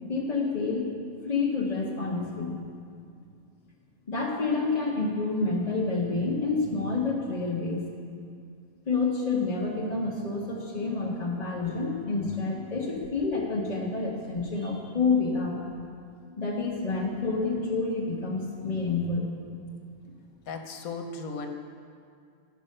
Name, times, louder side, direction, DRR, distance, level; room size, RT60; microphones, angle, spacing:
voice 1, 0.1-0.9 1.2-2.6 4.1-7.8 8.9-15.6 16.4-19.3, left 3 dB, 30° left, -5 dB, 1.1 m, -28 dB
voice 2, 20.5-21.5, left 4 dB, 80° left, 5 dB, 1.3 m, -36 dB
13.0 x 5.5 x 6.6 m, 2.3 s
omnidirectional pair, 1.5 m